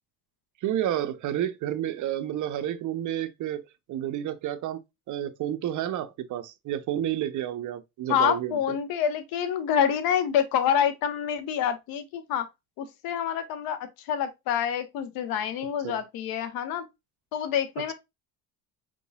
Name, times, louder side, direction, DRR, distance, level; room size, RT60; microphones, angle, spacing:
voice 1, 0.6-3.6 3.9-4.8 5.1-8.8 15.8-16.0, right 11 dB, 60° right, 0.7 m, -30 dB
voice 2, 8.1-12.5 12.8-16.9 17.3-17.9, left 8 dB, 80° left, 1.0 m, -27 dB
4.6 x 3.8 x 2.3 m
cardioid pair, 115°, 35 cm